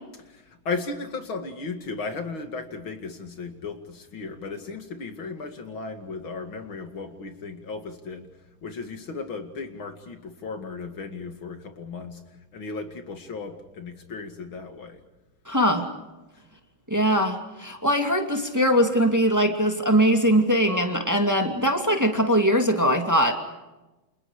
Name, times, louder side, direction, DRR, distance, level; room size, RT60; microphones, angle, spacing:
voice 1, 0.3-8.3 8.6-12.2 12.5-15.0, left 4 dB, 70° left, 6 dB, 3.1 m, -35 dB
voice 2, 15.5-15.9 16.9-23.4, equal, 10° right, 4 dB, 2.5 m, -21 dB
30.0 x 27.5 x 4.9 m, 1.1 s
omnidirectional pair, 2.3 m